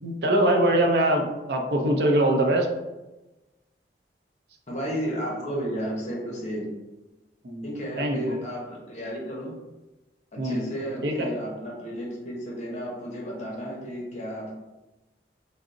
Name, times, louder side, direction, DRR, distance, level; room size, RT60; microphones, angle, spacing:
voice 1, 0.0-2.7 7.4-7.7 8.0-8.3 10.4-10.7 11.0-11.3, right 1 dB, 70° right, 1 dB, 0.6 m, -23 dB
voice 2, 4.7-6.8 7.6-9.5 10.3-14.5, equal, 40° left, -3 dB, 0.8 m, -33 dB
3.6 x 2.1 x 3.7 m, 1.1 s
head